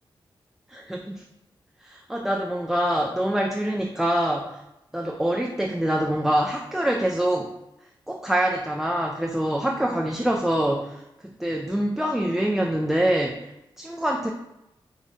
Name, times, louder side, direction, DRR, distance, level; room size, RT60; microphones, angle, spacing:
voice 1, 0.7-1.2 1.8-4.6 4.9-7.5 8.1-13.5 13.8-14.3, right 1 dB, 5° right, 0 dB, 0.3 m, -25 dB
2.7 x 2.5 x 4.2 m, 0.88 s
wide cardioid pair, 90°, 9 cm